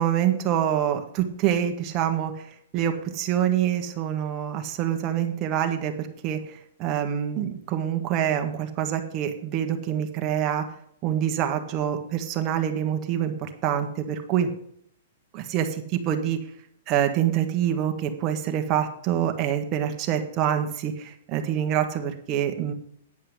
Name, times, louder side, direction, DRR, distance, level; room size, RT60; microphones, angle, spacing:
voice 1, 0.0-10.6 11.0-14.5 15.3-16.4 16.9-22.7, right 10 dB, 30° right, 4 dB, 1.6 m, -26 dB
9.9 x 5.5 x 8.1 m, 0.67 s
hypercardioid pair, 150°, 0 cm